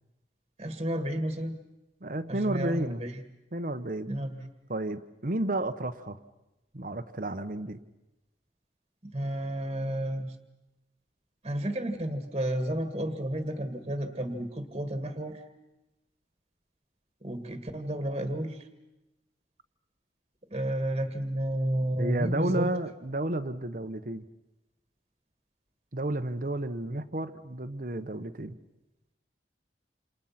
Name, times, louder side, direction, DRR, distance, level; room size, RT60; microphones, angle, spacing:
voice 1, 0.6-1.6 2.3-3.2 4.1-4.5 9.0-10.3 11.4-15.4 17.2-18.7 20.5-22.7, right 1 dB, 30° right, 7 dB, 1.8 m, -32 dB
voice 2, 2.0-3.0 3.5-4.1 4.7-6.2 6.7-7.8 22.0-24.2 25.9-28.6, right 1 dB, 50° right, 10 dB, 1.1 m, -31 dB
28.0 x 28.0 x 5.9 m, 0.96 s
head